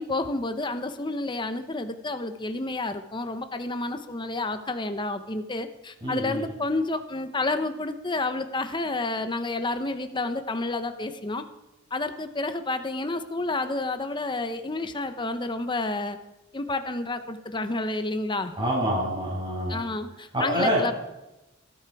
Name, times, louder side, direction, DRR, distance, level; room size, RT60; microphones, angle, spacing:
voice 1, 0.0-11.4 11.9-16.2 16.5-18.6 19.7-20.9, left 2 dB, 25° left, 8 dB, 0.9 m, -30 dB
voice 2, 6.0-6.5 18.6-19.8 20.3-20.8, right 1 dB, 25° right, -8 dB, 5.8 m, -26 dB
20.0 x 13.5 x 4.8 m, 0.99 s
head